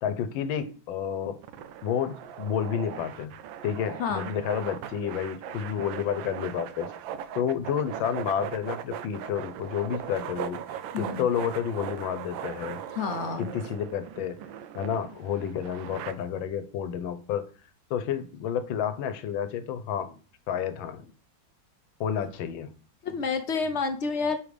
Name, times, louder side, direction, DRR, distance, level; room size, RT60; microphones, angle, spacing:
voice 1, 0.0-1.4 1.8-3.3 3.6-6.9 7.4-12.8 13.4-14.4 14.7-17.5 17.9-20.1 20.5-21.0 22.0-22.7, left 8 dB, 85° left, 1.5 m, -30 dB
sound 1, 1.4-16.1, right 9 dB, 85° right, 1.4 m, -39 dB
voice 2, 10.9-11.3 13.0-13.5 23.0-24.4, left 5 dB, 65° left, 0.6 m, -29 dB
5.6 x 5.1 x 4.9 m
omnidirectional pair, 2.1 m